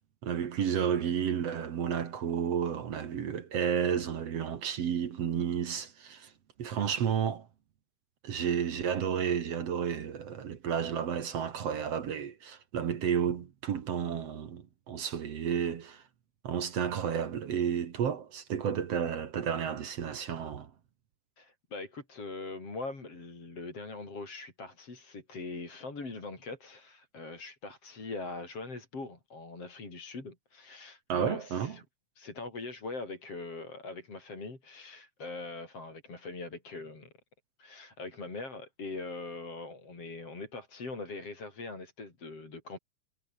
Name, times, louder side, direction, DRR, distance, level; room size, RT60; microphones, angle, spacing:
voice 1, 0.2-6.3 6.6-7.5 8.2-16.0 16.4-20.7 31.1-31.8, right 8 dB, 50° right, 2.3 m, -31 dB
voice 2, 21.4-31.8 32.2-37.1 37.6-42.8, left 3 dB, 40° left, 6.6 m, -42 dB
omnidirectional pair, 4.1 m